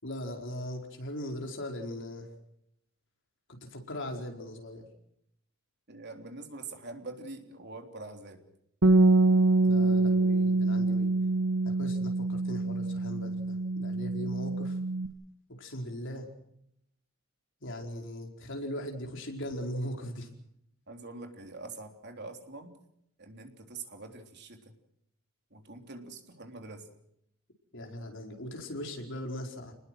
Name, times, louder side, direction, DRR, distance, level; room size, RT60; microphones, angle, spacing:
voice 1, 0.0-2.3 3.5-4.8 9.6-11.1 11.6-14.8 15.6-16.3 17.6-20.3 27.7-29.7, equal, 60° left, 3 dB, 4.8 m, -39 dB
voice 2, 5.9-8.4 20.9-22.7 23.2-24.7 25.5-26.9, right 3 dB, 50° right, 5 dB, 3.5 m, -44 dB
Bass guitar, 8.8-15.1, right 2 dB, 85° right, 1.7 m, -25 dB
30.0 x 20.5 x 6.3 m, 0.75 s
head